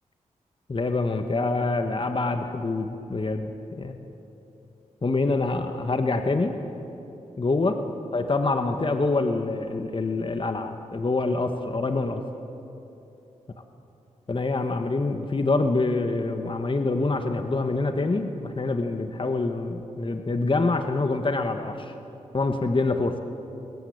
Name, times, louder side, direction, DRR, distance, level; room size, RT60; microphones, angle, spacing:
voice 1, 0.7-4.1 5.0-6.6 7.4-7.8 8.1-12.2 14.3-21.9 22.3-23.2, left 3 dB, 40° left, 6 dB, 1.7 m, -26 dB
23.0 x 19.5 x 8.8 m, 3.0 s
cardioid pair, 50°, 13 cm